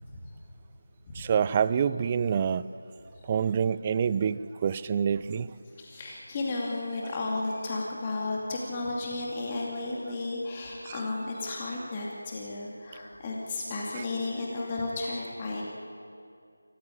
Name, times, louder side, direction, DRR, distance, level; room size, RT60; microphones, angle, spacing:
voice 1, 1.2-2.7 3.2-5.6 10.9-11.0 14.0-14.1, right 7 dB, 20° right, 15 dB, 0.5 m, -27 dB
voice 2, 5.8-15.6, left 2 dB, 20° left, -3 dB, 2.6 m, -33 dB
24.5 x 15.0 x 9.6 m, 2.4 s
figure-of-eight pair, 165°, 0 cm